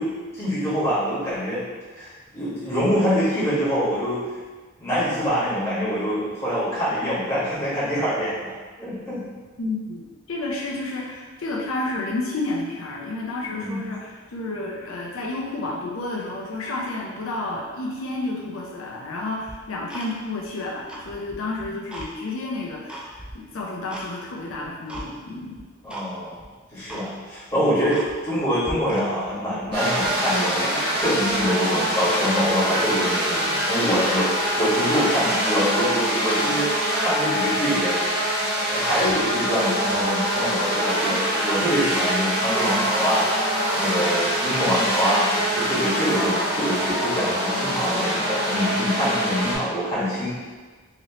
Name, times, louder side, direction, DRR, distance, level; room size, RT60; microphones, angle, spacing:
voice 1, 0.0-1.6 2.0-4.2 4.8-8.5 8.8-9.2 13.5-13.8 25.8-26.4 26.7-38.0 38.6-43.3 43.7-50.3, equal, 15° left, -12 dB, 1.4 m, -25 dB
voice 2, 9.6-25.6, left 2 dB, 90° left, -2 dB, 0.5 m, -31 dB
Tick-tock, 19.5-20.5 20.8-22.1 22.5-24.1 24.5-25.1 25.6-26.1 26.4-26.5 26.9-27.1 27.5-27.6 27.9-28.4 28.6-29.3 29.6-30.4 30.9-31.5 31.9-32.1 32.5-32.6 32.9-33.1 33.6-33.7 33.9-35.4 35.8-36.1, right 1 dB, 5° right, 0.3 m, -39 dB
sound 1, 29.7-49.6, equal, 50° right, 1.2 m, -24 dB
3.0 x 2.9 x 2.9 m, 1.4 s
head